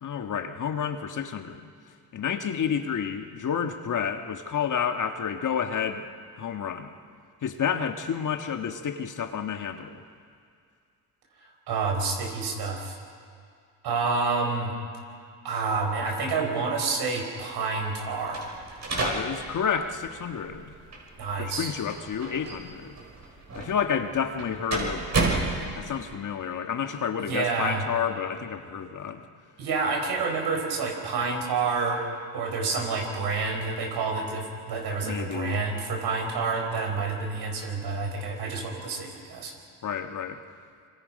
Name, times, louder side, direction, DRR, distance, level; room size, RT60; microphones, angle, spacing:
voice 1, 0.0-1.7 2.1-6.1 6.4-6.9 7.4-10.0 18.9-20.7 21.4-22.9 23.5-29.2 35.0-35.6 39.8-40.4, left 7 dB, 50° left, 6 dB, 1.5 m, -30 dB
voice 2, 11.7-13.0 13.8-14.7 15.4-18.5 21.2-21.7 27.3-27.8 29.6-32.0 32.3-39.5, right 4 dB, 75° right, 3 dB, 4.6 m, -28 dB
sound 1, 18.3-26.1, right 3 dB, 40° right, 5.5 m, -32 dB
26.0 x 24.5 x 5.4 m, 2.2 s
cardioid pair, 85°, 40 cm